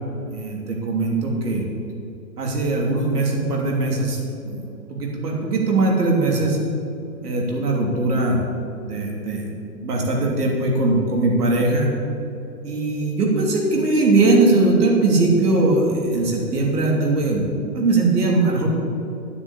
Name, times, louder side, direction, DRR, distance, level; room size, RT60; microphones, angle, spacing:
voice 1, 0.3-1.6 2.4-6.6 7.2-8.4 8.8-9.5 9.8-11.9 12.6-17.4 17.7-18.7, right 2 dB, 65° right, -1 dB, 3.3 m, -20 dB
9.4 x 8.2 x 8.4 m, 2.8 s
hypercardioid pair, 140°, 50 cm